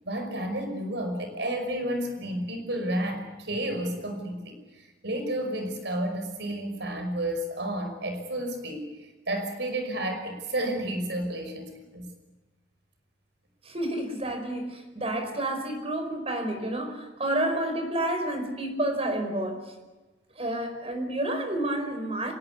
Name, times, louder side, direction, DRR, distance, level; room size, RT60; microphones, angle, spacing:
voice 1, 0.0-12.1, right 1 dB, 70° right, 6 dB, 5.6 m, -31 dB
voice 2, 13.6-19.7 20.4-22.3, right 1 dB, 35° right, 5 dB, 4.9 m, -30 dB
26.5 x 18.5 x 8.3 m, 1.2 s
head